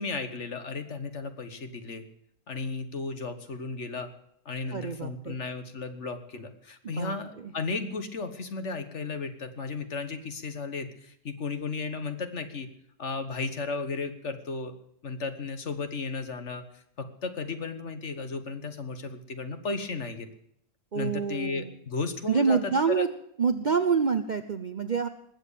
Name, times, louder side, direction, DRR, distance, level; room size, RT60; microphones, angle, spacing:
voice 1, 0.0-2.1 2.5-4.1 4.4-12.7 13.0-14.7 15.0-20.3 20.9-23.1, left 4 dB, 50° left, 9 dB, 1.6 m, -34 dB
voice 2, 4.7-5.4 6.8-7.5 20.9-21.8 22.3-23.1 23.4-25.1, right 5 dB, 45° right, 9 dB, 0.6 m, -27 dB
20.0 x 7.9 x 8.3 m, 0.72 s
omnidirectional pair, 1.6 m